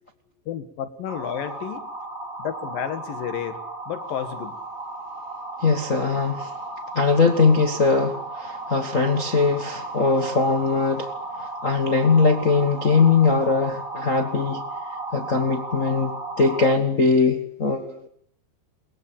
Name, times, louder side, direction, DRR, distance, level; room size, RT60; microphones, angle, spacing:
voice 1, 0.5-1.9 2.4-4.6, left 9 dB, 75° left, 9 dB, 3.6 m, -31 dB
sound 1, 1.1-16.7, right 2 dB, 20° right, 5.4 m, -35 dB
voice 2, 5.6-6.5 6.9-11.1 11.6-14.6 15.1-18.1, left 4 dB, 60° left, 5 dB, 0.8 m, -21 dB
23.0 x 22.0 x 9.0 m, 0.68 s
omnidirectional pair, 4.1 m